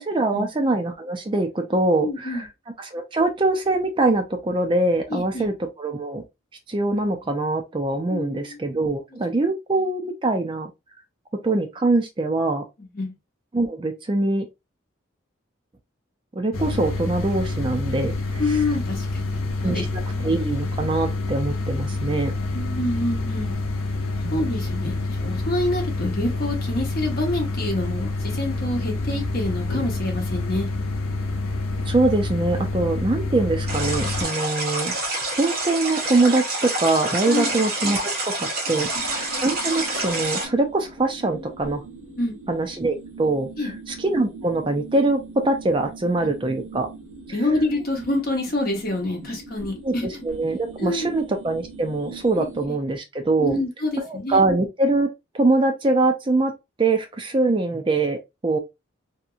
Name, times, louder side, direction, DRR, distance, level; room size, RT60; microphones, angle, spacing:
voice 1, 0.0-2.5 2.8-6.2 6.7-10.7 11.4-12.6 13.5-14.5 16.4-18.6 19.6-22.3 24.2-24.4 31.9-35.0 35.4-38.0 38.4-41.8 42.5-46.9 49.8-49.9 50.2-53.6 54.0-55.1 55.3-56.5 56.8-58.6, right 2 dB, 25° right, 0.4 m, -23 dB
voice 2, 2.0-2.5 5.1-5.5 8.1-8.6 12.8-13.1 18.4-19.9 20.1-20.3 22.5-23.5 24.3-30.7 37.3-37.5 38.7-39.1 42.2-42.3 43.6-43.7 47.3-50.1 50.8-51.2 52.4-52.8 53.4-54.4, left 2 dB, 45° left, 1.0 m, -27 dB
sound 1, 16.5-34.2, left 2 dB, 80° left, 0.6 m, -27 dB
sound 2, 33.7-40.5, right 2 dB, 45° right, 0.8 m, -27 dB
sound 3, 38.8-52.7, right 3 dB, 75° right, 0.9 m, -41 dB
2.8 x 2.6 x 2.4 m
head